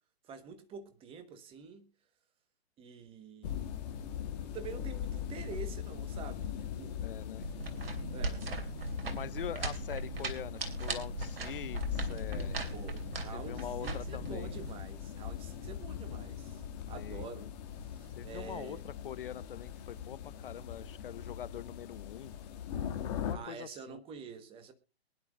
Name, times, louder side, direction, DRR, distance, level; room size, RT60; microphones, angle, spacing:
voice 1, 0.2-1.9 2.8-3.6 4.4-6.5 6.8-7.0 8.1-8.5 12.7-17.5 17.8-18.8 23.3-24.7, right 6 dB, 15° right, 1.3 m, -47 dB
sound 1, 3.4-23.4, left 9 dB, 40° left, 2.0 m, -41 dB
voice 2, 7.0-7.5 9.1-12.6 13.3-14.5 16.9-17.5 18.2-22.3 23.0-24.0, left 10 dB, 55° left, 0.7 m, -44 dB
sound 2, 7.4-14.7, right 3 dB, 65° right, 2.9 m, -39 dB
22.5 x 11.0 x 2.5 m
hypercardioid pair, 135°, 32 cm